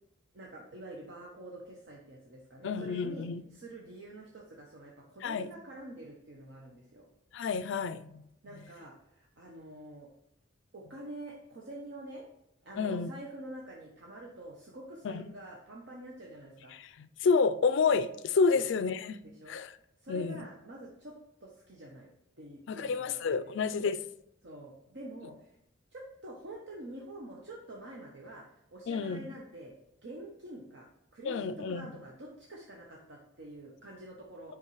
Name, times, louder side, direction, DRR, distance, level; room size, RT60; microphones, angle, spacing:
voice 1, 0.3-7.1 8.4-10.1 10.7-12.2 12.6-16.7 18.5-18.7 19.2-19.6 20.0-21.1 21.4-23.6 24.4-25.6 25.9-28.5 28.7-29.7 30.0-34.6, right 1 dB, 60° right, 0.9 m, -47 dB
voice 2, 2.6-3.4 5.2-5.5 7.3-8.2 12.8-13.1 15.0-15.3 16.7-19.2 19.5-19.7 20.1-20.4 22.7-24.0 28.9-29.2 31.3-31.9, left 5 dB, 60° left, 0.4 m, -29 dB
8.5 x 5.1 x 3.1 m
head